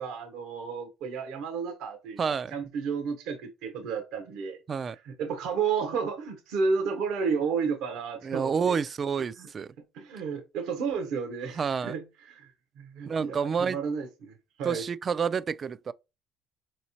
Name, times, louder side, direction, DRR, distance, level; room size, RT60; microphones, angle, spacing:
voice 1, 0.0-4.6 5.0-8.8 9.4-9.5 9.9-14.3 14.6-14.8, right 5 dB, 75° right, 0.9 m, -32 dB
voice 2, 2.2-2.5 4.7-5.0 8.2-9.7 11.6-11.9 13.1-13.8 14.6-15.9, right 6 dB, 40° right, 0.3 m, -29 dB
4.7 x 3.1 x 2.7 m
supercardioid pair, 90°, 0 cm